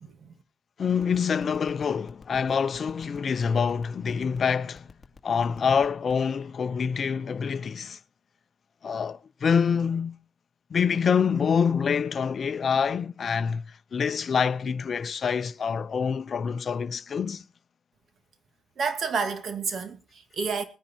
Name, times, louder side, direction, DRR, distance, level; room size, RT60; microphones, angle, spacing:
voice 1, 0.8-4.9 5.2-8.0 8.8-10.2 10.7-17.4, left 6 dB, 45° left, 0.7 m, -26 dB
sound 1, 1.0-6.3, left 4 dB, 20° left, 2.2 m, -49 dB
voice 2, 18.8-20.6, right 5 dB, 55° right, 2.0 m, -30 dB
20.0 x 9.9 x 4.4 m
cardioid pair, 90°, 0 cm